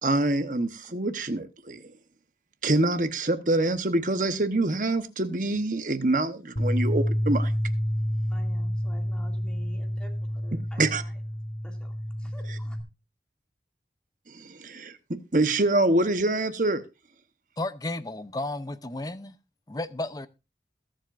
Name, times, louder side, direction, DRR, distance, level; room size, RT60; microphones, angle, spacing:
voice 1, 0.0-1.8 2.6-7.5 10.5-11.0 12.5-12.6 14.3-16.8, right 2 dB, 45° right, 1.1 m, -26 dB
Bass guitar, 6.6-12.8, equal, 45° left, 1.9 m, -29 dB
voice 2, 8.3-11.1 11.6-11.9 12.2-12.8, equal, 5° left, 2.4 m, -50 dB
voice 3, 17.6-19.4 19.7-20.3, left 2 dB, 20° left, 0.6 m, -33 dB
21.5 x 7.7 x 2.6 m
head